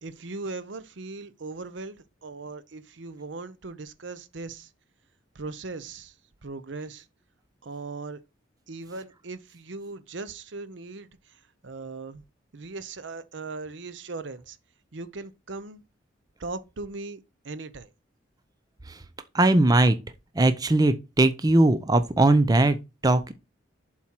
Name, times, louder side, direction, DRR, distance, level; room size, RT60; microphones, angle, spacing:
voice 1, 0.0-4.7 5.3-6.1 6.4-7.1 7.6-8.2 8.7-12.2 12.5-14.6 14.9-15.8 16.4-17.2 17.4-17.9, right 3 dB, 70° right, 0.7 m, -38 dB
voice 2, 19.3-20.0 20.3-22.8 23.0-23.3, right 2 dB, 20° right, 0.5 m, -20 dB
7.3 x 4.4 x 4.4 m
head